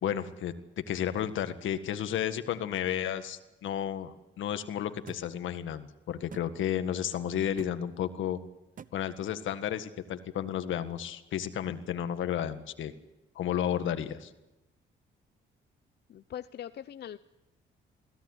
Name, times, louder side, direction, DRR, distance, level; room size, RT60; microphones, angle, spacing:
voice 1, 0.0-8.4 8.9-12.9 13.4-14.3, left 10 dB, 75° left, 10 dB, 1.7 m, -32 dB
sound 1, 5.1-5.2 6.3-6.5 7.6-7.8 8.8-8.9, right 7 dB, 45° right, 0.8 m, -45 dB
voice 2, 16.1-17.2, left 10 dB, 55° left, 13 dB, 0.7 m, -41 dB
21.5 x 16.5 x 9.8 m, 1.0 s
cardioid pair, 90°, 20 cm